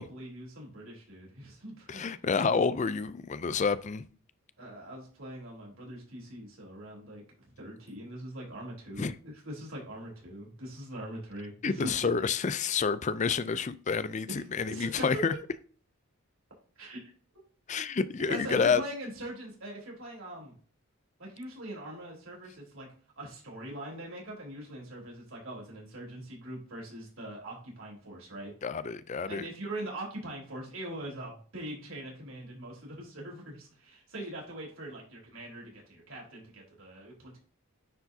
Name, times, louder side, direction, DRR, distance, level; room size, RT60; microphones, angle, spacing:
voice 1, 0.0-2.1 4.6-12.1 14.3-15.1 16.8-17.0 18.3-20.6 21.2-22.9 23.2-28.5 29.3-37.4, right 1 dB, 65° right, 3.7 m, -42 dB
voice 2, 1.9-4.0 9.0-9.1 11.6-15.3 17.7-18.8 28.6-29.4, left 5 dB, 35° left, 0.4 m, -29 dB
9.8 x 4.6 x 2.7 m
head